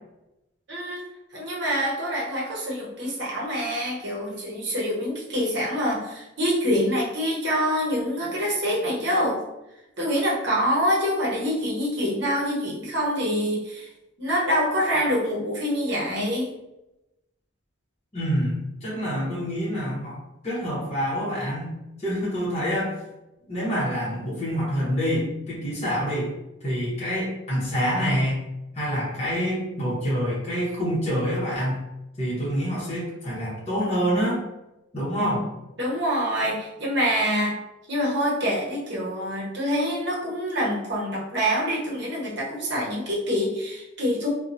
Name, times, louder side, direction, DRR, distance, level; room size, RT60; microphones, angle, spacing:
voice 1, 0.7-1.0 1.3-9.4 10.0-13.9 14.2-16.5 35.8-37.6 37.9-44.3, equal, 55° right, -4 dB, 0.8 m, -26 dB
voice 2, 18.1-22.9 23.5-26.3 26.6-28.5 28.7-31.8 32.2-34.4 34.9-35.5, equal, 30° left, -7 dB, 0.9 m, -26 dB
2.7 x 2.2 x 2.6 m, 0.93 s
head